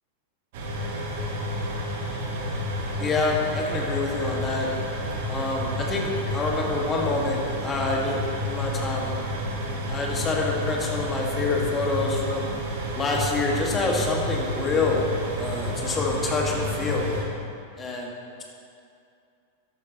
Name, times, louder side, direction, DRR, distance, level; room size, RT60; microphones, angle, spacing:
sound 1, 0.5-17.2, equal, 55° right, 1.8 m, -30 dB
voice 1, 3.0-4.7 5.3-9.2 9.9-12.5 13.0-15.0 15.3-17.1 17.8-18.1, left 3 dB, 20° left, -1 dB, 2.0 m, -27 dB
13.5 x 11.5 x 3.1 m, 2.5 s
figure-of-eight pair, 90°, 0 cm